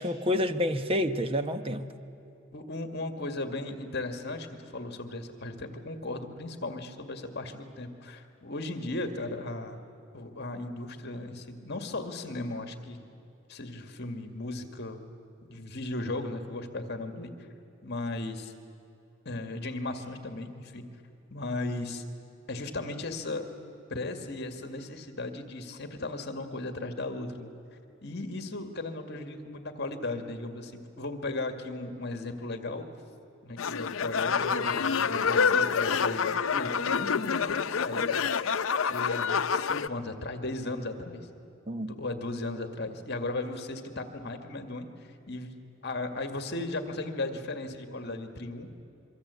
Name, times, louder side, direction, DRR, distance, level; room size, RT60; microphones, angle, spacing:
voice 1, 0.0-1.9 41.7-41.9, left 1 dB, 30° right, 9 dB, 1.1 m, -28 dB
voice 2, 2.5-9.8 10.1-13.0 13.5-15.1 15.4-17.3 17.8-18.5 19.3-20.9 21.3-22.0 22.5-23.5 23.9-27.5 28.0-32.8 33.4-38.1 38.8-41.3 41.8-44.9 45.3-45.5 45.8-48.7, left 2 dB, 55° left, 6 dB, 2.1 m, -36 dB
sound 1, 33.6-39.9, left 6 dB, 85° left, 0.7 m, -27 dB
26.0 x 24.0 x 8.3 m, 2.8 s
head